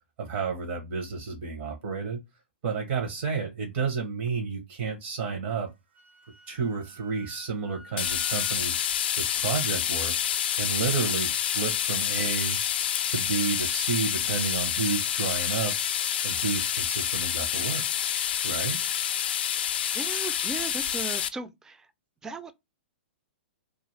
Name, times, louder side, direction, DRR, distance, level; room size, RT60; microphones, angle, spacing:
voice 1, 0.2-2.2 2.6-5.7 6.5-8.8 9.2-10.1 10.6-12.6 13.1-15.7 16.2-17.8 18.4-18.8, right 5 dB, 55° right, 0.8 m, -31 dB
Wind instrument woodwind instrument, 5.7-8.6, equal, 90° right, 0.9 m, -50 dB
sound 1, 8.0-21.3, left 9 dB, 60° left, 0.4 m, -28 dB
voice 2, 19.9-21.9 22.2-22.5, right 3 dB, 10° right, 0.3 m, -37 dB
2.4 x 2.3 x 3.1 m
hypercardioid pair, 115°, 6 cm